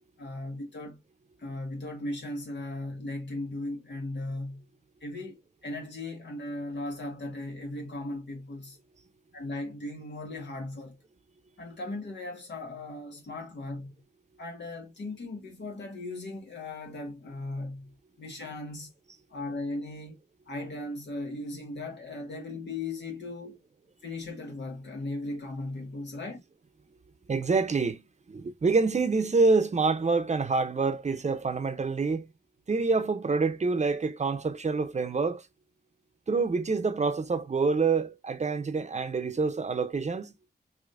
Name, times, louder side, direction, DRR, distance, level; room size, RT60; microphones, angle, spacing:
voice 1, 0.2-1.0 1.4-4.6 5.0-8.8 9.3-10.9 11.6-13.9 14.4-18.9 19.3-20.2 20.5-23.6 24.0-26.4, left 2 dB, 85° left, 1.6 m, -37 dB
voice 2, 27.3-28.0 28.3-32.3 32.7-35.4 36.3-40.3, right 4 dB, 40° right, 0.6 m, -26 dB
4.8 x 2.7 x 2.5 m
wide cardioid pair, 95°, 18 cm